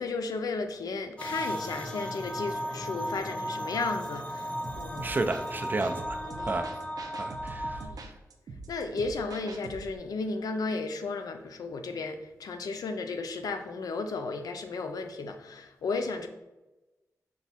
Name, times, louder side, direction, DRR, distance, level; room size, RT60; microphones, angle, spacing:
voice 1, 0.0-5.1 5.7-5.8 6.2-6.6 7.8-8.0 8.7-16.3, left 3 dB, 90° left, 6 dB, 0.4 m, -34 dB
sound 1, 1.2-7.9, equal, 20° left, 0.6 m, -35 dB
sound 2, 4.6-10.0, right 3 dB, 90° right, 0.5 m, -44 dB
voice 2, 5.0-6.2 6.4-6.7 7.1-7.8, right 2 dB, 30° right, 6 dB, 0.4 m, -31 dB
5.9 x 2.2 x 4.1 m, 1.0 s
wide cardioid pair, 95°, 6 cm